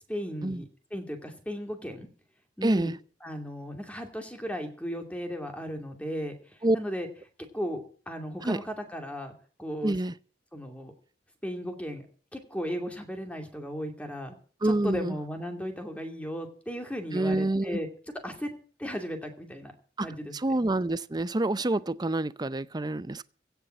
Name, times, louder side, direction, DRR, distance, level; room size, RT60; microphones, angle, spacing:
voice 1, 0.1-2.1 2.6-2.9 3.2-7.1 7.5-9.3 9.6-10.0 10.5-10.9 11.4-12.1 12.3-14.3 14.6-17.9 18.2-18.5 18.8-19.7 20.0-20.3, equal, 10° left, 2.5 m, -36 dB
voice 2, 2.6-3.0 6.6-6.8 8.4-8.6 9.8-10.1 14.6-15.2 17.1-17.8 20.0-20.1 20.3-23.2, right 2 dB, 25° right, 0.6 m, -27 dB
16.0 x 7.1 x 7.7 m
head